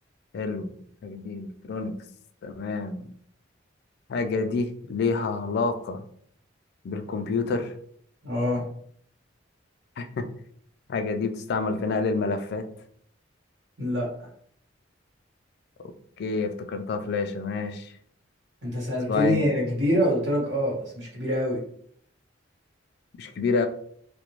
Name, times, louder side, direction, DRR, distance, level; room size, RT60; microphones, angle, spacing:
voice 1, 0.3-0.7 1.0-1.9 2.4-3.1 4.1-6.0 6.8-7.7 10.0-10.3 10.9-12.6 16.2-17.9 19.1-19.4 23.2-23.7, left 4 dB, 60° left, 7 dB, 0.3 m, -28 dB
voice 2, 8.2-8.6 13.8-14.1 18.6-21.6, equal, 65° right, -4 dB, 1.3 m, -25 dB
2.4 x 2.1 x 3.0 m, 0.63 s
head